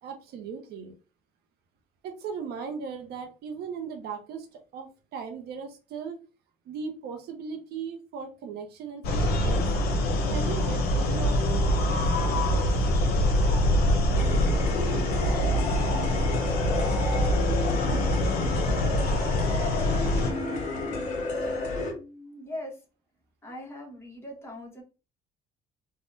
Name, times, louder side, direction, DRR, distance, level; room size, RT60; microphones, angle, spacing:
voice 1, 0.0-0.9 2.0-6.2 6.6-9.8 10.3-11.4 11.9-12.6, right 6 dB, 70° right, 5 dB, 0.6 m, -38 dB
sound 1, 9.0-20.3, left 1 dB, 70° left, 0.7 m, -24 dB
sound 2, 14.1-21.9, left 2 dB, 45° left, 1.3 m, -32 dB
voice 2, 21.8-22.7 23.4-24.8, left 1 dB, 15° left, -1 dB, 1.1 m, -41 dB
3.4 x 2.2 x 2.6 m, 0.33 s
cardioid pair, 110°, 17 cm